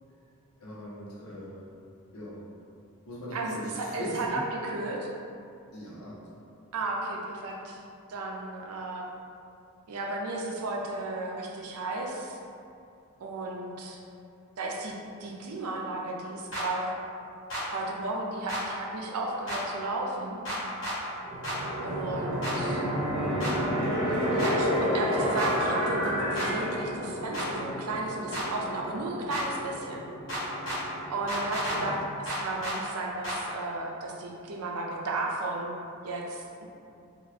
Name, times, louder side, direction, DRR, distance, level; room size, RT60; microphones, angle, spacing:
voice 1, 0.6-1.6 2.1-2.4 3.1-4.4 5.7-6.2 31.7-31.9, equal, 80° left, -8 dB, 0.9 m, -40 dB
voice 2, 3.3-5.1 6.7-7.8 8.1-9.1 9.9-12.4 13.2-14.0 14.6-14.9 15.2-17.0 17.7-20.4 21.8-22.8 24.3-30.0 31.1-35.7 36.0-36.4, right 2 dB, 80° right, -1 dB, 0.5 m, -34 dB
sound 1, 16.5-16.7 17.5-17.6 18.5-18.6 19.5-19.6 20.5-21.0 21.4-21.6 22.4-22.6 23.4-23.5 24.4-24.5 25.4-25.5 26.4-26.5 27.3-27.5 28.3-28.5 29.3-29.4 30.3-30.8 31.3-31.8 32.3-32.8 33.2-33.4, equal, 55° left, 1.2 m, -32 dB
sound 2, 21.2-31.9, equal, 55° right, 1.0 m, -31 dB
2.8 x 2.5 x 3.2 m, 2.5 s
head